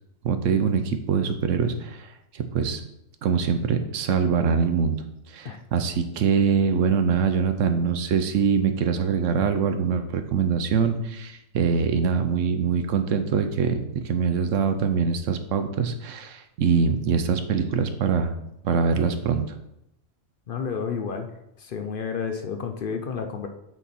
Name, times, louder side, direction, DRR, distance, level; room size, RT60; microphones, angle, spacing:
voice 1, 0.2-2.1 2.3-2.8 3.2-5.0 5.3-18.3 18.6-19.6, right 6 dB, 80° right, 8 dB, 1.1 m, -23 dB
voice 2, 20.5-21.3 21.6-23.5, left 6 dB, 55° left, 5 dB, 0.7 m, -30 dB
8.1 x 4.1 x 4.2 m, 0.82 s
omnidirectional pair, 1.3 m